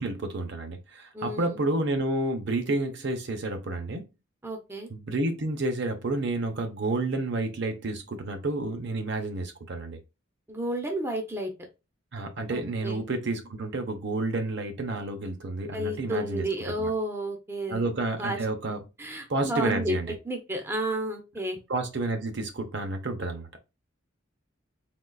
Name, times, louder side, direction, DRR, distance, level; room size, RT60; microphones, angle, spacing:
voice 1, 0.0-4.1 4.9-10.0 12.1-16.9 17.7-18.8 19.3-20.1 21.7-23.5, right 2 dB, 55° right, 0.6 m, -30 dB
voice 2, 1.1-1.7 4.4-4.9 10.5-11.5 12.5-13.0 15.7-18.4 19.0-20.0 20.2-21.6, right 1 dB, 10° right, 0.5 m, -32 dB
3.7 x 2.3 x 2.3 m
head